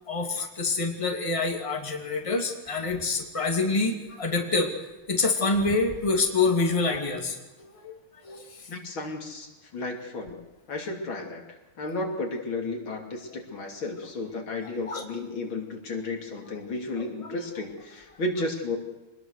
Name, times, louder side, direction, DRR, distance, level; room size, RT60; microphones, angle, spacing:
voice 1, 0.1-4.7 5.1-7.9 8.2-8.7 14.9-15.0, left 3 dB, 15° left, 3 dB, 2.6 m, -26 dB
voice 2, 8.7-10.4 10.7-18.8, left 2 dB, 70° left, 3 dB, 3.7 m, -33 dB
25.0 x 20.5 x 6.6 m, 1.1 s
omnidirectional pair, 2.3 m